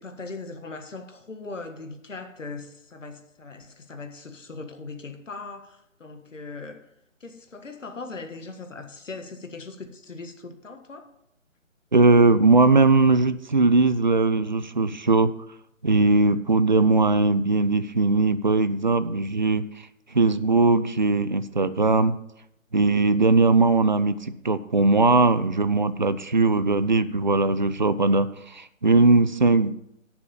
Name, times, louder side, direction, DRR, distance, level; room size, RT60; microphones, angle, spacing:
voice 1, 0.0-6.8 7.2-11.1, left 3 dB, 70° left, 6 dB, 1.7 m, -39 dB
voice 2, 11.9-15.3 15.8-19.7 20.1-22.2 22.7-29.7, right 3 dB, 40° right, 14 dB, 0.4 m, -20 dB
12.5 x 7.0 x 5.7 m, 0.80 s
figure-of-eight pair, 150°, 39 cm